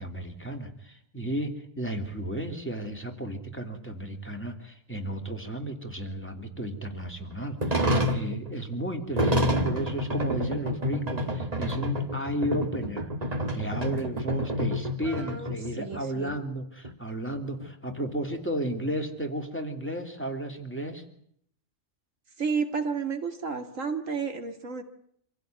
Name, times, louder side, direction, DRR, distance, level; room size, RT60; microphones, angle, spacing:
voice 1, 0.0-13.1 13.5-21.0, right 1 dB, 10° left, 3 dB, 3.0 m, -33 dB
sound 1, 7.6-16.0 16.3-16.4 16.8-16.9 17.3-19.0, equal, 30° right, 1.8 m, -29 dB
voice 2, 15.0-16.4 22.4-24.8, right 5 dB, 70° right, 6 dB, 2.3 m, -32 dB
26.0 x 16.0 x 9.4 m, 0.69 s
omnidirectional pair, 1.4 m